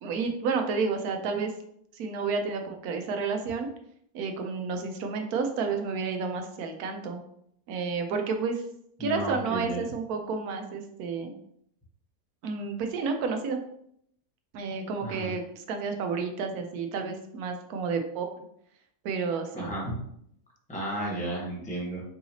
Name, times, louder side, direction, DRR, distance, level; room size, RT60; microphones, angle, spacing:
voice 1, 0.0-1.5 1.9-3.7 4.1-7.2 7.7-8.6 9.0-11.3 12.4-13.6 14.5-18.3 19.0-19.8, right 5 dB, 90° right, 5 dB, 1.1 m, -30 dB
voice 2, 9.0-9.8 15.0-15.3 19.5-20.0 20.7-22.0, right 1 dB, 5° left, -4 dB, 0.8 m, -33 dB
4.7 x 2.8 x 2.8 m, 0.70 s
omnidirectional pair, 1.6 m